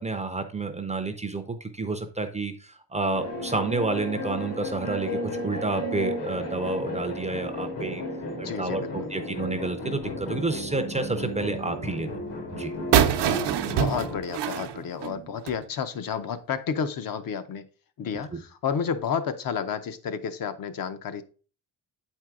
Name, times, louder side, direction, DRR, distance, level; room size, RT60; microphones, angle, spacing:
voice 1, 0.0-8.0 8.4-12.2 12.5-12.7 18.3-18.4, right 3 dB, 15° right, 0.4 m, -30 dB
sound 1, 3.1-14.2, left 1 dB, 75° left, 2.2 m, -34 dB
voice 2, 8.4-8.9 13.8-17.6 18.0-21.2, left 7 dB, 55° left, 0.7 m, -31 dB
sound 2, 12.9-15.6, right 9 dB, 75° right, 0.7 m, -24 dB
8.3 x 4.5 x 3.6 m
wide cardioid pair, 180°, 41 cm